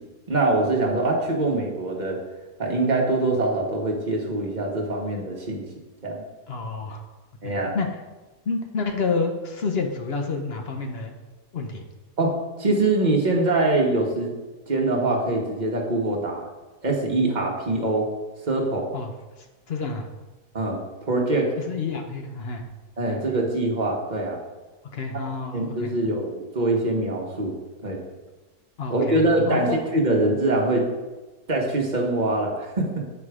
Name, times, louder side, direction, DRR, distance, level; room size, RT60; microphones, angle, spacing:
voice 1, 0.3-2.2 2.6-5.6 6.0-6.2 7.4-7.8 12.2-14.3 14.7-16.5 16.8-18.1 18.4-18.9 20.5-21.5 23.0-24.4 25.5-27.6 27.8-28.0 28.9-30.9 31.5-33.0, right 2 dB, 30° right, 0 dB, 1.2 m, -23 dB
voice 2, 6.5-7.0 7.4-8.0 8.5-11.1 11.5-11.8 18.9-19.1 19.4-20.0 21.6-22.6 23.1-23.2 24.9-25.9 28.8-29.8, left 4 dB, 50° left, 4 dB, 0.8 m, -29 dB
8.2 x 4.8 x 4.9 m, 1.2 s
omnidirectional pair, 1.7 m